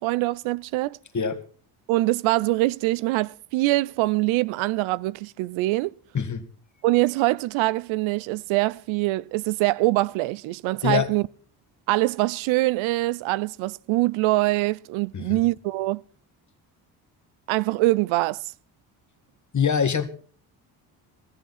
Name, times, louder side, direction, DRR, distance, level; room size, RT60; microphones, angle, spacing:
voice 1, 0.0-1.0 1.9-5.9 6.8-11.2 11.9-16.0 17.5-18.5, right 19 dB, 75° right, 0.6 m, -24 dB
voice 2, 6.1-6.5 10.8-11.1 15.1-15.4 19.5-20.1, left 6 dB, 35° left, 1.8 m, -24 dB
17.5 x 13.5 x 4.1 m
supercardioid pair, 60°, 48 cm